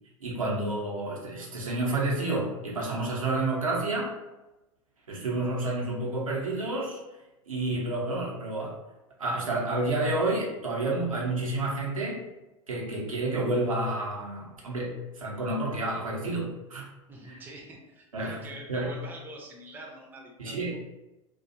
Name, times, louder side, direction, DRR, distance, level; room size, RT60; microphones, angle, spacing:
voice 1, 0.2-4.1 5.1-7.0 7.5-8.8 9.2-12.2 12.7-16.8 18.1-18.4 18.7-18.9 20.4-20.8, right 2 dB, 80° right, -3 dB, 0.8 m, -30 dB
voice 2, 17.1-20.8, right 1 dB, 10° right, -1 dB, 0.5 m, -45 dB
2.6 x 2.3 x 2.5 m, 0.99 s
figure-of-eight pair, 90°, 17 cm